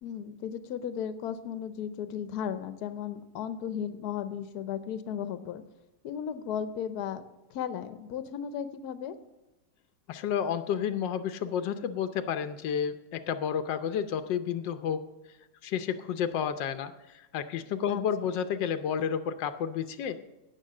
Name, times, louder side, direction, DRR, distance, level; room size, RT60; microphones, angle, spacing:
voice 1, 0.0-5.6 6.0-7.2 7.5-9.2 17.9-18.3, left 8 dB, 65° left, 11 dB, 1.3 m, -35 dB
voice 2, 10.1-15.0 15.6-16.9 17.3-20.2, left 8 dB, 90° left, 10 dB, 1.4 m, -31 dB
16.5 x 6.2 x 7.6 m, 1.0 s
omnidirectional pair, 1.9 m